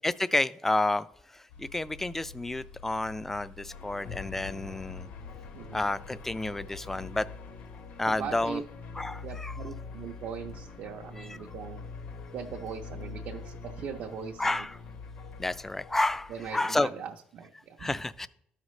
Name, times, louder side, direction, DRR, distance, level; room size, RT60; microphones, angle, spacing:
voice 1, 0.0-5.1 5.7-7.3 8.0-8.6 8.9-9.6 11.2-11.4 14.4-14.8 15.4-16.9 17.8-18.3, left 2 dB, 10° left, 16 dB, 0.3 m, -30 dB
sound 1, 1.5-6.8, left 4 dB, 90° left, 1.6 m, -49 dB
sound 2, 3.7-16.6, left 5 dB, 65° left, 0.8 m, -44 dB
voice 2, 5.5-5.9 8.0-8.6 9.2-11.9 12.3-14.6 16.3-17.9, right 7 dB, 60° right, 2 dB, 0.6 m, -40 dB
12.5 x 5.0 x 3.1 m, 0.72 s
cardioid pair, 110°, 3 cm